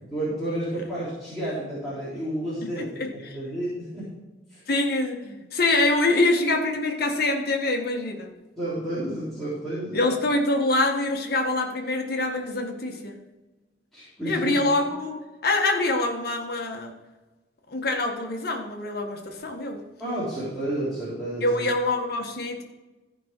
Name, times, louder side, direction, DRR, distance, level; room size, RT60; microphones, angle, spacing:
voice 1, 0.1-2.9 3.1-4.1 4.5-4.6 8.6-10.0 13.9-14.5 20.0-21.7, right 1 dB, ahead, -12 dB, 3.6 m, -31 dB
voice 2, 2.6-3.4 4.7-8.3 9.9-13.1 14.2-16.9 17.7-19.8 21.4-22.6, left 2 dB, 60° left, 2 dB, 1.6 m, -25 dB
14.5 x 5.5 x 4.5 m, 1.1 s
head